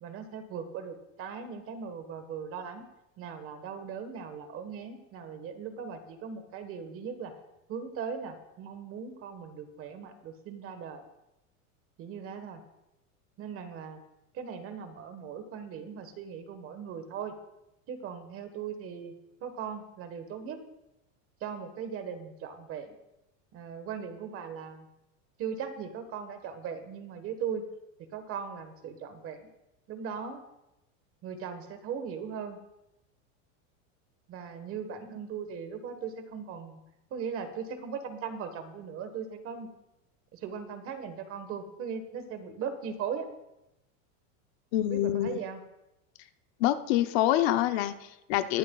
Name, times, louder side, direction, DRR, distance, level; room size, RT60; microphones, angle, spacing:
voice 1, 0.0-2.8 3.2-7.3 7.7-11.0 12.0-12.6 13.4-14.0 14.3-17.3 17.9-19.1 19.4-20.6 21.4-22.9 23.5-24.9 25.4-27.6 28.1-29.5 29.9-30.4 31.2-32.6 34.3-36.8 37.1-39.7 40.3-43.3 44.8-45.6, right 7 dB, 35° right, 9 dB, 1.3 m, -39 dB
voice 2, 44.7-45.4 46.6-48.6, left 13 dB, 50° left, 10 dB, 0.6 m, -26 dB
20.5 x 11.0 x 2.3 m, 0.91 s
supercardioid pair, 150°, 40 cm